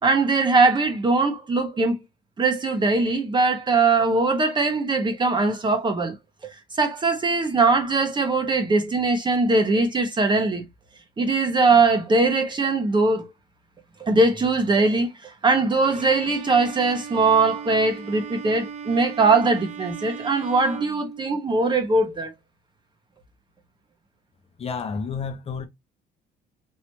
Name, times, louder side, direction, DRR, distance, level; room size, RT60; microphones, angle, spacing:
voice 1, 0.0-2.0 2.4-6.1 6.8-10.6 11.2-13.3 14.0-22.3, right 3 dB, 25° right, 1.2 m, -21 dB
Bowed string instrument, 15.8-21.7, right 6 dB, 45° right, 0.9 m, -38 dB
voice 2, 24.6-25.7, left 5 dB, 35° left, 0.8 m, -30 dB
4.6 x 3.1 x 2.9 m
cardioid pair, 110°, 17 cm